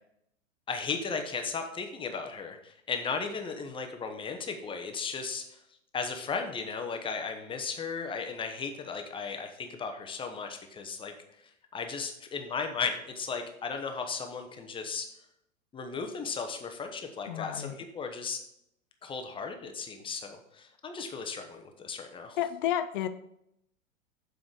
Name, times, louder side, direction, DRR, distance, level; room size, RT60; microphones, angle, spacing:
voice 1, 0.7-5.4 5.9-11.1 11.7-15.1 15.7-18.4 19.0-22.4, left 5 dB, 15° left, 5 dB, 0.8 m, -36 dB
voice 2, 17.3-17.8 22.4-23.1, left 11 dB, 40° left, 11 dB, 0.5 m, -31 dB
7.3 x 5.1 x 4.7 m, 0.77 s
figure-of-eight pair, 100°, 40 cm